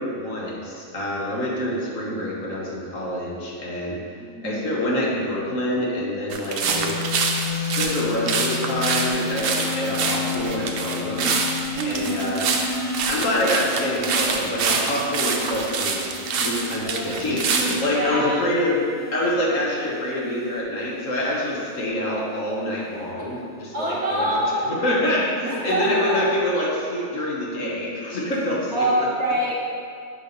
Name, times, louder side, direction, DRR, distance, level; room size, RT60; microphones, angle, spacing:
voice 1, 0.0-4.0 4.4-6.9 7.5-11.3 11.8-12.5 13.1-16.1 16.3-18.8 19.1-24.4 24.7-28.9, left 1 dB, 60° left, -4 dB, 1.3 m, -26 dB
voice 2, 4.2-4.7 11.7-12.4 16.9-17.2 17.8-18.4 23.2-23.3 23.7-25.0 25.4-26.2 28.7-29.6, right 1 dB, 50° right, -5 dB, 1.3 m, -26 dB
sound 1, 6.3-17.8, right 4 dB, 80° right, 0.5 m, -26 dB
sound 2, 6.6-23.1 24.0-24.4, left 5 dB, 75° left, 1.6 m, -33 dB
6.6 x 3.4 x 5.3 m, 2.3 s
omnidirectional pair, 1.6 m